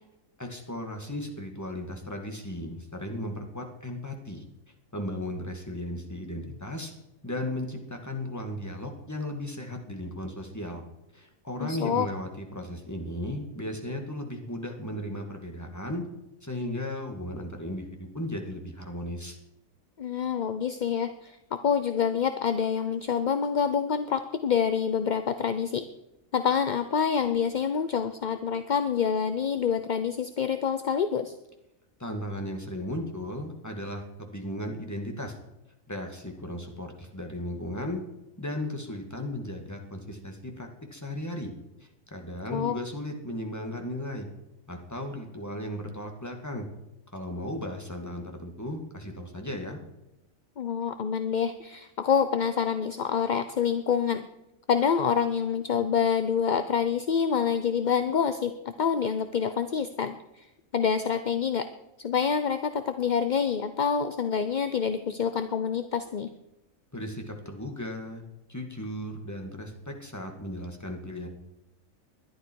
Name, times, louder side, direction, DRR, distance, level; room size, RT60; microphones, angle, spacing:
voice 1, 0.4-4.4 4.9-6.9 7.2-10.8 11.1-16.0 16.4-19.4 32.0-35.4 35.9-38.0 38.4-41.5 41.8-44.3 44.7-46.7 47.1-49.8 66.9-68.2 68.5-71.3, left 1 dB, 10° left, 3 dB, 2.1 m, -36 dB
voice 2, 11.6-12.1 20.0-21.4 21.6-25.8 26.3-31.3 42.5-42.7 50.6-54.3 54.7-60.5 60.7-61.7 62.0-66.3, left 7 dB, 45° left, 10 dB, 0.7 m, -27 dB
20.0 x 12.0 x 4.7 m, 0.92 s
omnidirectional pair, 1.4 m